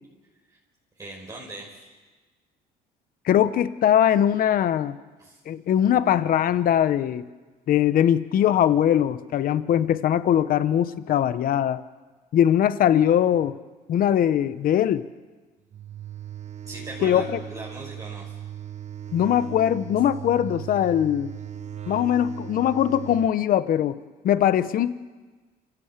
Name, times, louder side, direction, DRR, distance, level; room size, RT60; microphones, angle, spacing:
voice 1, 1.0-1.8 5.2-5.4 16.7-18.3, right 2 dB, 20° right, -4 dB, 5.3 m, -39 dB
voice 2, 3.2-4.9 5.5-7.2 7.7-11.8 12.3-13.5 13.9-15.0 17.0-17.4 19.1-21.3 21.9-24.0 24.2-24.9, left 10 dB, 55° left, 14 dB, 0.9 m, -21 dB
sound 1, 15.7-23.3, right 10 dB, 45° right, 1.0 m, -38 dB
28.0 x 16.0 x 7.5 m, 1.3 s
cardioid pair, 110°, 17 cm